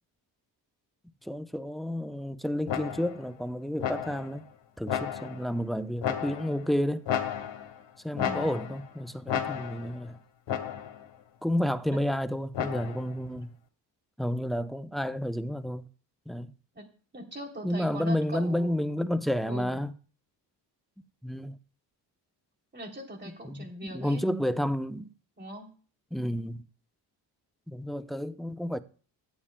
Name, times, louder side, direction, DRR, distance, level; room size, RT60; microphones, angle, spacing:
voice 1, 1.2-4.4 4.8-7.0 8.0-10.2 11.4-13.5 14.2-15.9 16.3-16.5 17.6-19.9 21.2-21.6 23.2-25.1 26.1-26.6 27.7-28.8, equal, ahead, 0.6 m, -31 dB
sound 1, 2.7-3.3 3.8-4.4 4.9-5.5 6.0-6.7 7.1-7.8 8.2-8.9 9.3-10.0 10.5-11.1 12.5-13.2, left 9 dB, 80° left, 1.6 m, -33 dB
voice 2, 8.1-8.5 11.9-12.0 16.7-16.9 17.1-18.9 19.4-19.8 22.7-24.2 25.4-25.7, right 1 dB, 25° right, 3.1 m, -40 dB
22.5 x 8.8 x 2.2 m
cardioid pair, 90°, 43 cm